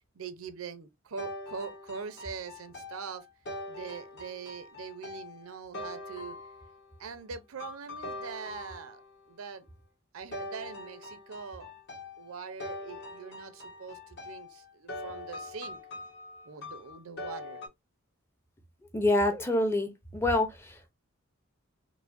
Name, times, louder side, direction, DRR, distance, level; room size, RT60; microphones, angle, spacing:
voice 1, 0.2-3.3 3.7-6.4 7.0-9.0 9.3-9.7 10.1-11.7 12.2-15.8 16.5-17.6, right 5 dB, 90° right, 0.6 m, -42 dB
sound 1, 1.2-6.9 7.6-9.2 10.3-17.7, left 2 dB, 55° left, 1.1 m, -43 dB
voice 2, 18.9-20.8, left 1 dB, 10° left, 0.5 m, -27 dB
4.8 x 2.1 x 2.5 m
head